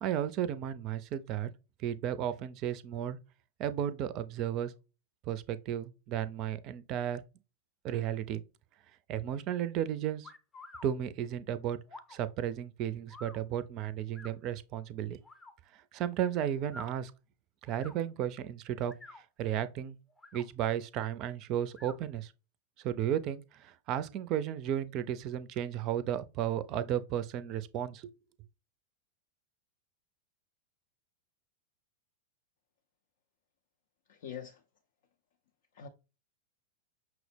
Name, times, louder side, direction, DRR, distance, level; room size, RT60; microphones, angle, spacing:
voice 1, 0.0-1.5 1.8-3.2 3.6-4.7 5.3-7.2 7.8-8.4 9.1-10.3 10.8-11.8 12.1-15.2 15.9-17.1 17.7-18.9 19.4-20.0 20.3-22.3 22.8-28.1, right 10 dB, 40° right, 0.4 m, -34 dB
sound 1, 10.2-10.9 11.8-12.2 13.1-13.4 14.1-14.3 15.2-15.5 16.6-16.9 17.7-18.0 18.8-19.2 20.1-20.4 21.7-22.0, left 2 dB, 15° left, 0.6 m, -49 dB
voice 2, 34.1-34.6 35.7-35.9, left 8 dB, 60° left, 0.4 m, -43 dB
5.8 x 2.0 x 3.3 m
figure-of-eight pair, 95°, 0 cm